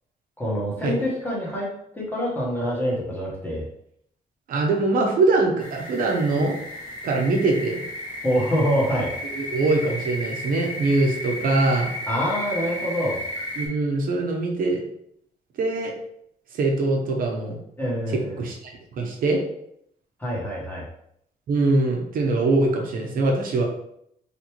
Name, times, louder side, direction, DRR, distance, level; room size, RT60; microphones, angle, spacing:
voice 1, 0.4-1.7 1.9-3.7 8.2-9.1 12.1-13.2 17.8-18.4 20.2-20.8, equal, 10° left, -4 dB, 1.1 m, -25 dB
voice 2, 4.5-6.6 7.0-7.8 9.3-11.9 13.6-14.8 15.6-15.9 16.5-17.6 18.1-19.4 21.5-23.6, right 2 dB, 70° right, 0 dB, 0.9 m, -23 dB
sound 1, 5.6-13.7, left 1 dB, 30° left, 1.0 m, -34 dB
4.1 x 3.4 x 3.0 m, 0.73 s
wide cardioid pair, 175°, 15 cm